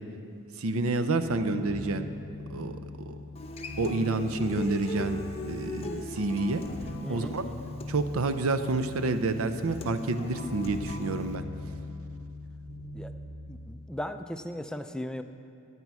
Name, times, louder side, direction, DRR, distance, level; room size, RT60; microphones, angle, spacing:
voice 1, 0.6-2.1 2.5-2.8 3.1-3.2 3.8-6.6 7.1-7.5 7.9-11.4, right 3 dB, 70° right, 10 dB, 0.6 m, -29 dB
sound 1, 1.2-13.3, left 2 dB, 90° right, 2.1 m, -41 dB
Human voice / Acoustic guitar, 3.4-11.4, left 2 dB, 30° left, 0.7 m, -40 dB
voice 2, 7.0-7.7 12.9-13.1 13.5-15.2, left 1 dB, 5° left, 8 dB, 0.3 m, -37 dB
13.5 x 8.4 x 4.7 m, 2.6 s
head